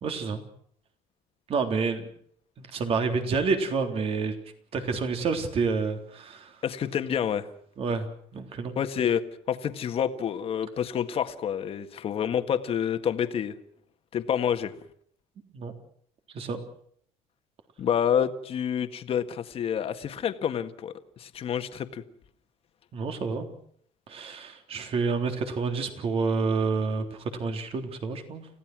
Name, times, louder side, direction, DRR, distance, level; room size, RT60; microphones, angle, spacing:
voice 1, 0.0-0.4 1.5-2.1 2.7-4.4 4.7-6.6 7.8-8.1 8.3-8.7 15.5-15.7 16.3-16.6 22.9-23.5 24.1-28.5, right 4 dB, 45° right, 6 dB, 3.6 m, -28 dB
voice 2, 6.6-7.5 8.8-13.5 14.1-14.7 17.8-22.0, left 8 dB, 45° left, 9 dB, 1.7 m, -28 dB
30.0 x 16.0 x 6.3 m, 0.62 s
cardioid pair, 130°, 14 cm